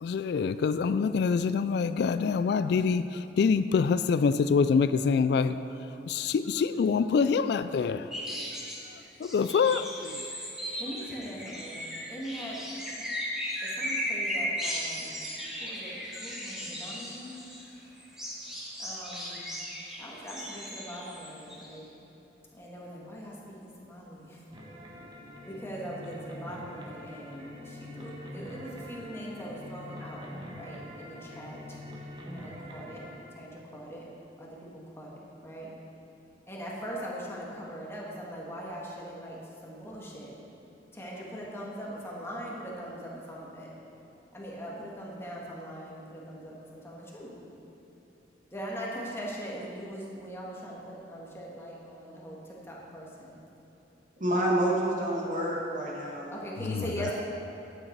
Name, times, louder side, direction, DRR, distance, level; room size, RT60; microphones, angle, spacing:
voice 1, 0.0-5.6 6.1-8.1 9.2-10.3 56.7-56.8, left 5 dB, 65° left, 13 dB, 0.3 m, -25 dB
sound 1, 8.1-8.8 9.2-17.6 18.0-21.7, equal, 5° right, 1.9 m, -36 dB
voice 2, 10.8-11.8 12.1-12.9 13.6-15.3 15.6-17.4 18.8-19.4 20.0-21.9 22.5-24.5 25.4-30.3 30.5-31.8 32.3-33.1 33.4-34.1 34.4-35.7 36.5-40.3 40.9-43.7 44.3-47.3 48.5-53.4 56.3-57.1, equal, 15° left, -4 dB, 1.9 m, -41 dB
sound 2, 24.5-33.2, left 1 dB, 25° right, 1.4 m, -44 dB
voice 3, 54.2-56.3 57.0-57.1, right 1 dB, 50° right, -3 dB, 2.0 m, -28 dB
11.5 x 9.1 x 4.6 m, 3.0 s
head